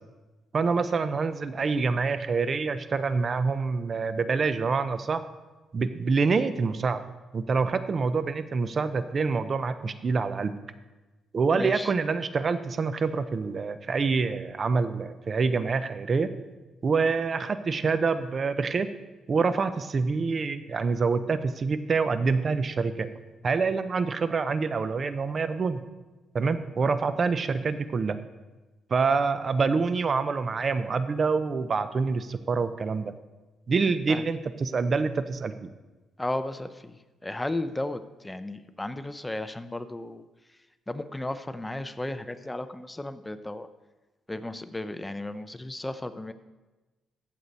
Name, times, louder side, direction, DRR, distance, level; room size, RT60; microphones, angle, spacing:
voice 1, 0.5-5.2 5.7-7.0 7.3-10.5 11.3-16.3 16.8-18.9 19.3-23.1 23.4-25.8 26.3-28.2 28.9-33.1 33.7-35.7, right 4 dB, 40° right, 12 dB, 0.6 m, -26 dB
voice 2, 11.6-11.9 34.1-34.2 36.2-37.0 37.2-40.3 40.9-43.7 44.3-46.3, left 1 dB, 10° left, 11 dB, 0.6 m, -34 dB
14.5 x 6.6 x 4.2 m, 1.2 s
cardioid pair, 90°, 0 cm